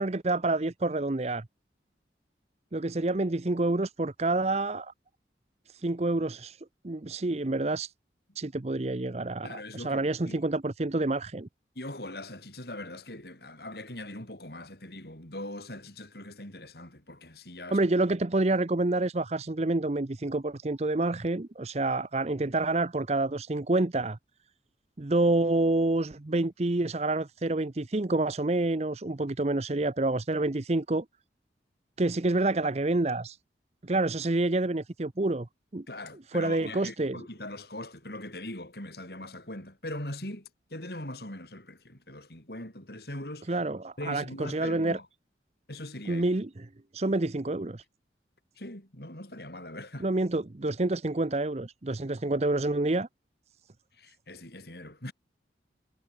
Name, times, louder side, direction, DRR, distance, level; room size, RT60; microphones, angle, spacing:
voice 1, 0.0-1.5 2.7-4.9 5.7-7.9 8.3-11.5 17.7-24.2 25.0-31.0 32.0-33.4 33.8-35.5 35.7-35.8 36.3-37.2 43.5-45.0 46.1-46.5 46.9-47.8 50.0-53.1, right 2 dB, 35° right, 0.7 m, -28 dB
voice 2, 9.4-10.4 11.8-17.8 35.9-43.6 44.0-45.1 45.7-46.3 48.6-50.1 53.9-55.1, left 1 dB, 60° left, 5.9 m, -41 dB
head